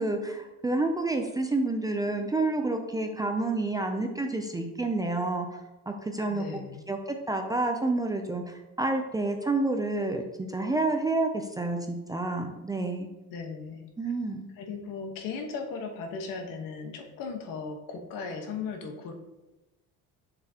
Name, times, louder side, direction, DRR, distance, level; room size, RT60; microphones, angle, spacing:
voice 1, 0.0-5.6 5.9-6.4 6.9-10.2 10.5-13.1 14.0-14.5, right 2 dB, 10° right, 4 dB, 0.4 m, -29 dB
voice 2, 6.3-6.8 13.3-14.1 14.5-19.1, left 5 dB, 75° left, 3 dB, 1.3 m, -37 dB
7.0 x 6.8 x 2.9 m, 1.0 s
cardioid pair, 155°, 34 cm